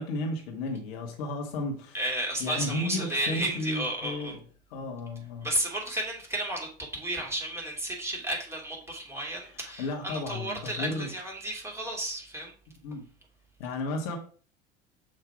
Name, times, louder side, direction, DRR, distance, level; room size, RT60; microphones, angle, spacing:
voice 1, 0.0-2.0 2.4-4.4 4.7-5.5 9.4-11.1 12.8-13.0 13.6-14.2, left 2 dB, 65° left, 1.6 m, -33 dB
voice 2, 1.9-4.3 5.4-12.5, right 1 dB, 10° right, 2.6 m, -33 dB
6.3 x 3.2 x 4.6 m
hypercardioid pair, 70°, 33 cm